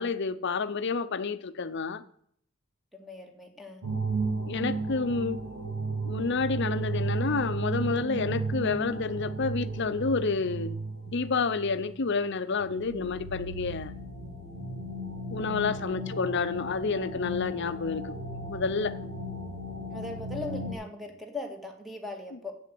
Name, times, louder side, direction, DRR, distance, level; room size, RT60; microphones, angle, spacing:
voice 1, 0.0-2.0 4.5-5.4 6.0-10.8 11.1-13.9 15.3-18.2 18.5-19.0, left 4 dB, 55° left, 0.7 m, -29 dB
voice 2, 2.9-3.8 15.8-16.1 19.9-22.5, left 2 dB, ahead, 1.9 m, -39 dB
sound 1, 3.8-12.2 12.5-20.7, right 2 dB, 80° right, 4.0 m, -34 dB
8.3 x 7.9 x 7.6 m
head